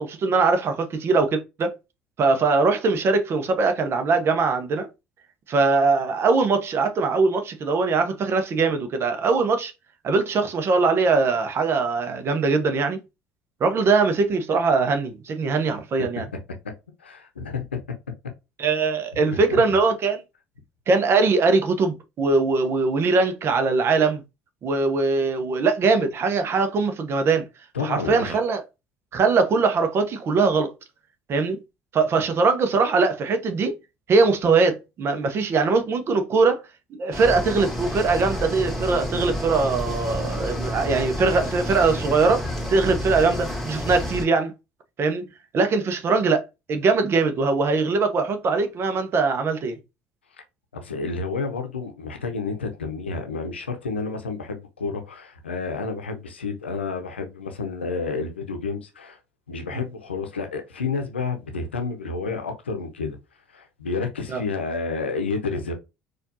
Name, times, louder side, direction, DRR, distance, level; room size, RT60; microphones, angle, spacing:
voice 1, 0.0-1.7 2.2-4.9 5.5-9.7 10.0-13.0 13.6-16.3 18.6-20.2 20.9-24.2 24.6-27.4 27.8-28.6 29.1-30.7 31.3-31.6 31.9-33.7 34.1-36.6 36.9-44.5 45.0-45.2 45.5-49.8 59.7-59.8 64.3-64.4, right 4 dB, 45° right, 0.8 m, -21 dB
voice 2, 16.0-16.4 17.0-18.0 19.3-19.4 27.7-28.4 50.7-59.2 59.5-63.2 63.5-65.7, left 4 dB, 90° left, 0.7 m, -30 dB
sound 1, 37.1-44.2, equal, ahead, 2.1 m, -29 dB
4.3 x 2.6 x 2.7 m
hypercardioid pair, 60°, 6 cm